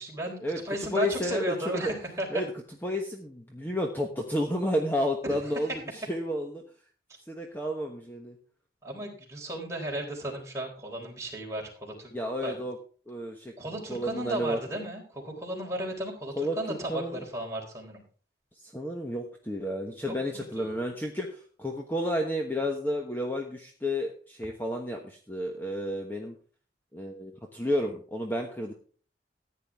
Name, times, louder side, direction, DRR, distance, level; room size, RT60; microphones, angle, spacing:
voice 1, 0.0-0.4 0.6-2.3 5.2-5.4 5.6-5.8 8.8-12.1 12.4-12.6 13.6-18.0 20.3-20.7, right 1 dB, 15° right, -1 dB, 3.9 m, -34 dB
voice 2, 0.9-1.9 2.3-2.5 2.8-5.7 5.9-6.6 7.3-8.4 12.1-12.8 13.1-13.5 13.9-14.6 16.4-17.2 18.6-26.3 26.9-28.7, equal, 10° left, 1 dB, 1.2 m, -31 dB
14.5 x 9.8 x 3.6 m, 0.41 s
head